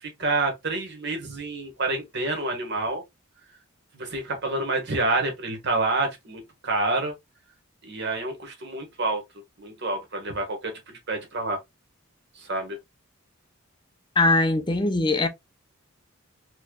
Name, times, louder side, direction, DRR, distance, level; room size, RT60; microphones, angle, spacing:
voice 1, 0.0-3.0 3.9-7.1 7.8-9.2 9.6-11.6 12.4-12.8, right 2 dB, 50° right, 1.4 m, -28 dB
voice 2, 14.2-15.3, left 2 dB, 20° left, 0.5 m, -21 dB
4.4 x 3.1 x 2.3 m
head